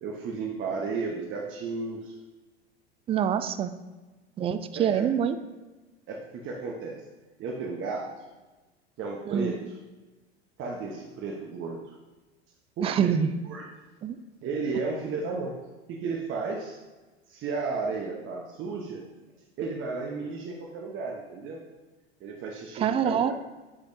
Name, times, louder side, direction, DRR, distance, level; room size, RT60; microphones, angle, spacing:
voice 1, 0.0-2.1 4.8-5.1 6.1-7.0 7.4-8.2 9.0-9.8 10.6-11.8 12.8-13.2 13.5-13.7 14.4-15.6 15.9-16.8 17.3-19.1 19.6-21.6 22.2-23.3, right 4 dB, 40° right, 0 dB, 1.0 m, -33 dB
voice 2, 3.1-3.7 4.4-5.4 9.3-9.5 12.8-13.3 14.0-14.2 22.8-23.3, right 8 dB, 20° right, 12 dB, 0.3 m, -25 dB
9.7 x 5.2 x 2.7 m, 1.2 s
hypercardioid pair, 80°, 32 cm